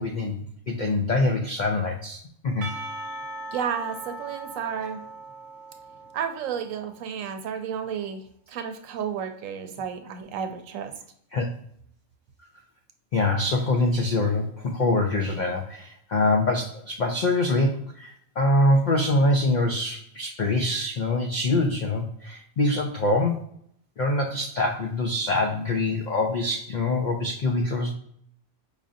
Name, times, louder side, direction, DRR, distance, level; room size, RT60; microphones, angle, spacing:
voice 1, 0.0-2.7 9.7-9.8 11.3-11.5 13.1-23.4 24.0-27.9, left 2 dB, 80° left, 2 dB, 0.4 m, -24 dB
Percussion / Church bell, 2.6-7.0, right 1 dB, 50° right, 0.6 m, -39 dB
voice 2, 3.5-5.0 6.1-8.2 8.5-10.9, right 7 dB, 80° right, 6 dB, 1.0 m, -32 dB
4.9 x 2.5 x 2.5 m, 0.68 s
omnidirectional pair, 1.3 m